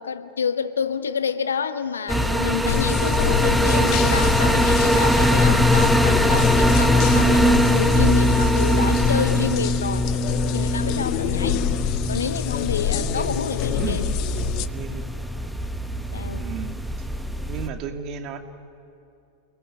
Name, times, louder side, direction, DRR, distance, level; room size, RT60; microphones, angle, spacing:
voice 1, 0.0-10.1 10.5-11.7 12.1-14.1 16.1-16.5, left 6 dB, 70° left, 10 dB, 1.2 m, -28 dB
sound 1, 2.1-17.7, equal, ahead, 1.2 m, -21 dB
sound 2, 2.7-14.7, left 13 dB, 40° left, 0.8 m, -27 dB
voice 2, 13.0-13.4 13.8-14.0 14.7-15.1 16.4-17.1 17.5-18.4, right 6 dB, 35° right, 5 dB, 2.4 m, -34 dB
29.0 x 20.5 x 9.8 m, 2.6 s
figure-of-eight pair, 90°, 0 cm